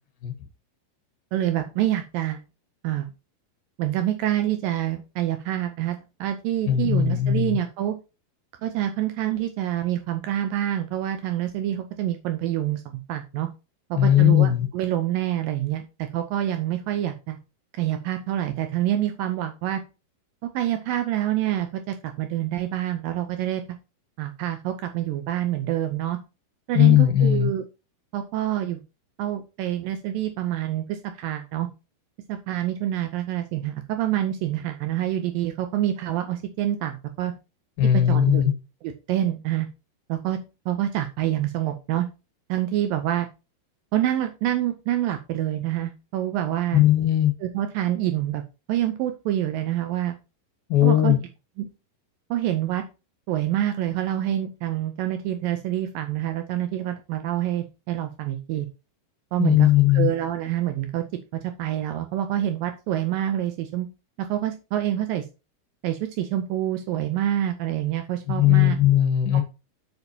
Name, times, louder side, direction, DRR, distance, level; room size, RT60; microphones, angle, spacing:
voice 1, 1.3-2.4 2.8-3.1 3.8-8.0 8.6-13.5 13.9-17.4 17.8-19.8 20.4-23.6 24.2-26.2 26.7-27.6 28.1-28.8 29.2-31.7 32.3-37.3 38.1-38.4 39.1-39.7 40.1-40.4 40.7-42.1 42.5-43.3 43.9-46.8 47.4-48.4 48.7-50.2 50.8-51.2 51.6-51.7 52.3-52.8 53.3-58.7 59.3-59.7 59.9-61.0 61.3-63.9 64.2-65.3 65.8-68.8, right 12 dB, 85° right, 2.1 m, -27 dB
voice 2, 6.7-7.6 14.0-14.7 26.7-27.5 37.8-38.5 46.7-47.3 50.7-51.2 59.4-60.1 68.3-69.4, left 12 dB, 70° left, 2.9 m, -18 dB
8.1 x 7.0 x 2.8 m
omnidirectional pair, 4.6 m